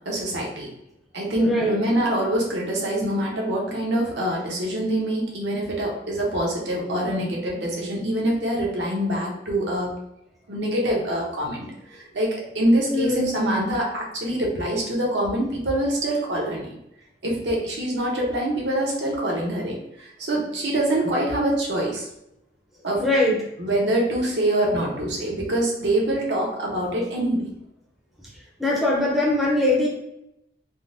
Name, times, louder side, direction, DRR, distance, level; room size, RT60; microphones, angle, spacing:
voice 1, 0.1-0.7 1.1-9.9 10.5-16.7 17.2-22.1 22.8-23.0 23.6-27.5, right 1 dB, 75° right, -2 dB, 0.8 m, -25 dB
voice 2, 1.4-1.8 12.9-13.3 23.0-23.4 28.3-29.9, left 1 dB, ahead, -5 dB, 0.6 m, -22 dB
3.6 x 2.1 x 2.6 m, 0.83 s
head